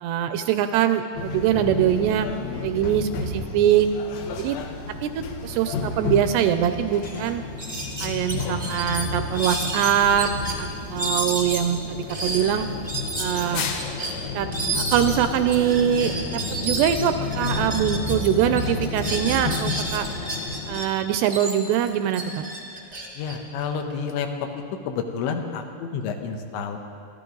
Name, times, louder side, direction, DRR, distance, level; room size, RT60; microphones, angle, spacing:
voice 1, 0.0-2.3 2.6-3.9 4.4-4.6 5.0-7.4 8.0-10.3 10.6-12.7 13.2-13.7 14.3-14.5 14.8-20.1 20.7-22.2, right 10 dB, 80° right, 9 dB, 2.5 m, -23 dB
sound 1, 1.2-20.8, left 4 dB, 70° left, 2.3 m, -31 dB
sound 2, 6.6-6.7 7.0-7.2 7.6-10.5 11.0-18.3 18.6-20.9 21.2-24.1, right 2 dB, 45° right, 0.8 m, -31 dB
voice 2, 23.2-24.3 24.5-26.8, left 6 dB, 85° left, 4 dB, 3.4 m, -30 dB
24.0 x 14.5 x 3.9 m, 2.3 s
omnidirectional pair, 5.1 m